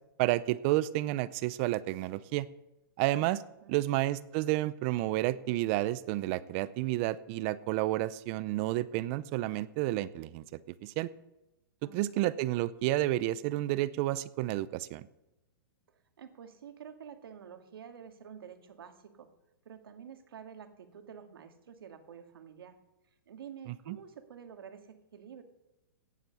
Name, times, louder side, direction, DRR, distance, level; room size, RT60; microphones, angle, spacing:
voice 1, 0.2-2.5 3.0-3.4 3.7-11.1 11.9-15.1 23.7-24.0, right 16 dB, 35° right, 18 dB, 0.5 m, -31 dB
voice 2, 11.8-12.4 15.9-19.3 19.7-22.8 23.3-25.4, right 8 dB, 80° right, 7 dB, 1.9 m, -49 dB
17.0 x 7.4 x 7.0 m, 0.96 s
hypercardioid pair, 150°, 12 cm